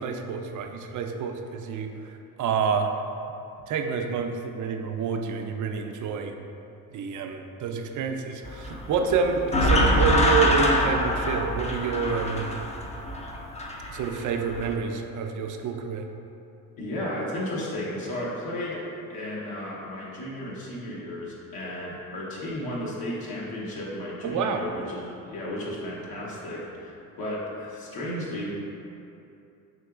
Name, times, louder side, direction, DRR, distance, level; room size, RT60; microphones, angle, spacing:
voice 1, 0.0-1.9 2.4-2.9 3.7-6.3 6.9-12.5 13.9-16.1 24.2-24.6, right 5 dB, 55° right, 5 dB, 0.4 m, -28 dB
sound 1, 8.5-14.7, equal, 20° left, 0.4 m, -25 dB
voice 2, 16.8-18.8 19.1-28.5, left 1 dB, 70° left, -6 dB, 1.0 m, -34 dB
5.1 x 2.9 x 2.4 m, 2.7 s
supercardioid pair, 65°, 37 cm